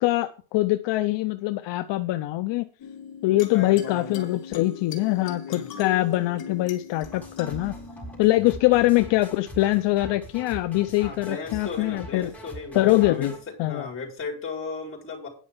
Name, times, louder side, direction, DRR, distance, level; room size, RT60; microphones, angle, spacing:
voice 1, 0.0-2.7 3.2-7.7 8.2-12.3 12.7-13.3 13.6-13.9, left 17 dB, 65° left, 0.7 m, -23 dB
sound 1, 2.8-9.8, left 7 dB, 50° left, 2.6 m, -40 dB
voice 2, 3.5-4.3 5.4-5.7 11.0-13.3 13.6-15.3, left 4 dB, 25° left, 4.5 m, -36 dB
sound 2, 7.0-13.4, equal, 5° left, 4.3 m, -43 dB
10.0 x 5.5 x 7.3 m
cardioid pair, 160°, 48 cm